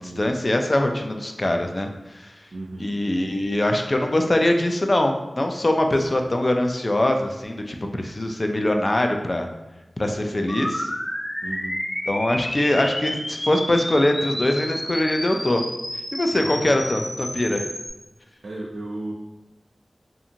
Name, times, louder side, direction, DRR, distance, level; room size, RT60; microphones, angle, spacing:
voice 1, 0.0-2.3 2.8-9.5 10.0-10.9 12.1-15.6 16.1-17.7, left 1 dB, 40° left, 4 dB, 0.3 m, -23 dB
voice 2, 2.5-2.9 6.1-6.3 11.4-11.8 16.4-16.8 18.4-19.1, right 2 dB, 80° right, -4 dB, 0.3 m, -35 dB
sound 1, 10.5-17.9, equal, 85° left, 0.8 m, -31 dB
2.5 x 2.5 x 2.8 m, 1.0 s
wide cardioid pair, 60°, 0 cm